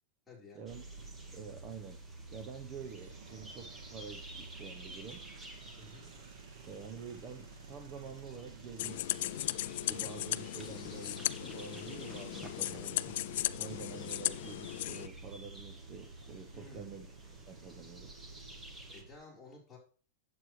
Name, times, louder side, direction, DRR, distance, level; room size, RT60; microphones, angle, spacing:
voice 1, 0.3-0.7 5.8-6.1 16.5-16.9 18.9-19.8, left 3 dB, 10° left, -5 dB, 4.2 m, -53 dB
sound 1, 0.7-19.0, right 1 dB, 10° right, 1.2 m, -53 dB
sound 2, 0.7-19.2, right 3 dB, 70° right, 2.0 m, -51 dB
voice 2, 1.3-2.0 2.3-5.2 6.7-9.4 9.8-13.1 13.6-17.1 17.5-18.2, right 6 dB, 30° right, 4 dB, 0.9 m, -48 dB
sound 3, 8.8-15.1, left 15 dB, 65° left, 0.3 m, -37 dB
8.5 x 8.0 x 3.2 m, 0.39 s
supercardioid pair, 145°, 0 cm